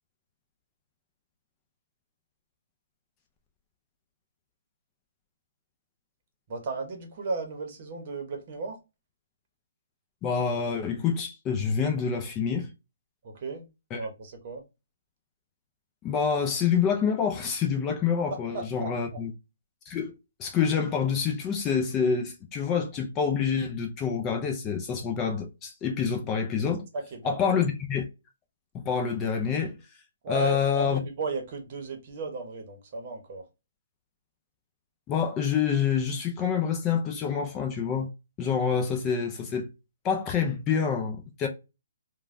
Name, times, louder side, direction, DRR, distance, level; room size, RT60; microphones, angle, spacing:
voice 1, 6.5-8.8 13.2-13.7 14.0-14.6 18.5-18.9 27.1-27.5 30.2-33.4, right 3 dB, 40° right, 0.9 m, -35 dB
voice 2, 10.2-12.7 13.9-14.0 16.0-19.3 19.9-20.1 20.4-26.8 27.2-28.1 28.7-29.7 30.3-31.0 35.1-38.1 38.4-39.7 40.0-41.5, left 6 dB, 20° left, 0.5 m, -27 dB
3.1 x 2.2 x 2.5 m
hypercardioid pair, 155°, 0 cm